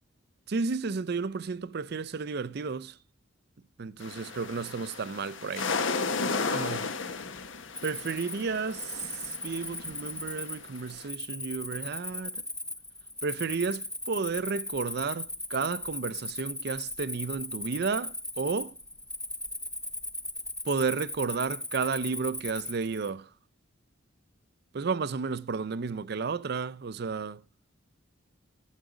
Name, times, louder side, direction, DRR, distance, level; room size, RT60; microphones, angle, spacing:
voice 1, 0.5-3.0 3.8-5.7 6.5-6.9 7.8-12.4 13.2-18.7 20.6-23.3 24.7-27.4, right 5 dB, 55° right, 0.5 m, -32 dB
sound 1, 4.0-11.1, left 4 dB, 75° left, 1.1 m, -34 dB
Cricket, 7.7-23.1, left 1 dB, 5° left, 0.5 m, -38 dB
11.5 x 8.3 x 5.0 m
head